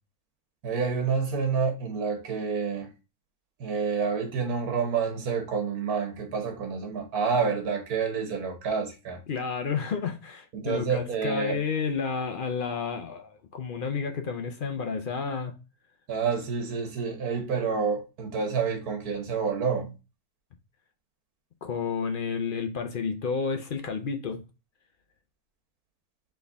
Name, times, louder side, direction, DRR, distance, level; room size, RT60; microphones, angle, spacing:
voice 1, 0.6-2.9 3.6-9.2 10.5-11.6 16.1-19.9, right 5 dB, 85° right, 1.6 m, -28 dB
voice 2, 9.3-15.5 21.6-24.4, left 5 dB, 60° left, 0.5 m, -31 dB
4.2 x 3.5 x 3.4 m
omnidirectional pair, 1.5 m